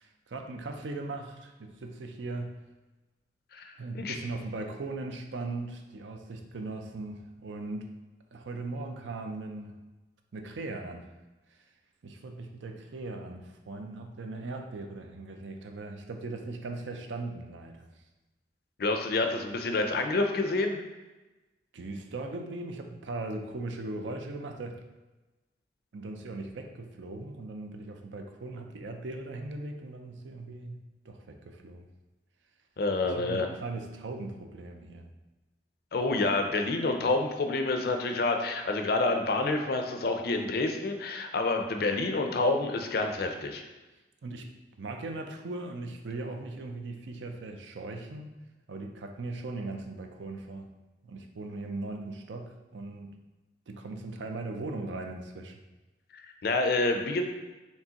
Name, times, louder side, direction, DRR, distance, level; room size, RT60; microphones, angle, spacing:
voice 1, 0.0-2.6 3.8-7.9 8.3-9.8 10.3-11.1 11.5-11.6 12.0-18.0 21.7-24.8 25.9-30.8 31.0-31.9 33.0-35.1 44.2-44.5 44.8-48.4 48.7-50.7 51.0-53.1 53.7-55.6, right 2 dB, 85° right, 4 dB, 0.5 m, -39 dB
voice 2, 3.5-4.2 18.8-20.8 32.8-33.5 35.9-43.6 56.1-57.2, left 2 dB, 60° left, 5 dB, 0.5 m, -28 dB
4.6 x 3.3 x 2.9 m, 1.1 s
head